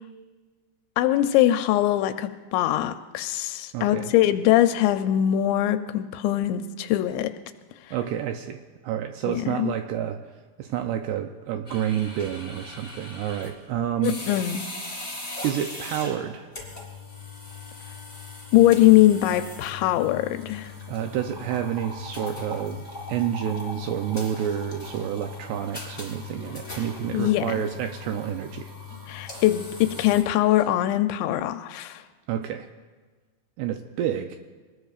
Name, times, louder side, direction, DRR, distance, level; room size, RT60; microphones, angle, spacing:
voice 1, 1.0-7.3 9.3-9.7 14.0-14.6 18.5-20.7 27.1-27.5 29.1-32.0, left 13 dB, 85° left, 9 dB, 2.8 m, -22 dB
voice 2, 3.7-4.1 7.9-10.2 10.6-14.2 15.4-16.5 20.9-28.7 32.3-32.7 33.6-34.4, right 10 dB, 80° right, 6 dB, 2.5 m, -29 dB
sound 1, 11.7-30.7, left 3 dB, 10° left, 3.5 m, -39 dB
24.0 x 20.0 x 2.4 m, 1.4 s
omnidirectional pair, 5.2 m